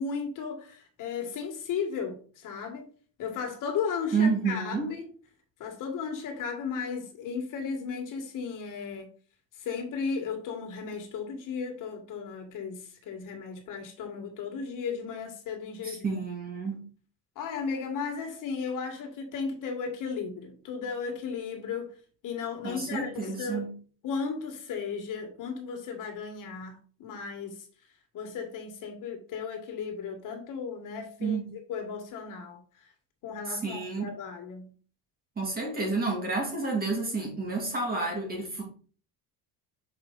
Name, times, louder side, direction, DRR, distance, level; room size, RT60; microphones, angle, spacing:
voice 1, 0.0-2.9 3.2-5.1 5.6-9.1 9.6-16.2 17.3-21.9 22.2-23.7 24.0-27.6 28.1-32.6 33.2-34.7, left 5 dB, 55° left, 1.8 m, -35 dB
voice 2, 4.1-4.9 15.8-16.8 22.6-23.7 31.2-31.5 33.5-34.1 35.4-38.6, right 4 dB, 25° right, 2.6 m, -30 dB
6.6 x 4.9 x 4.0 m
cardioid pair, 150°, 38 cm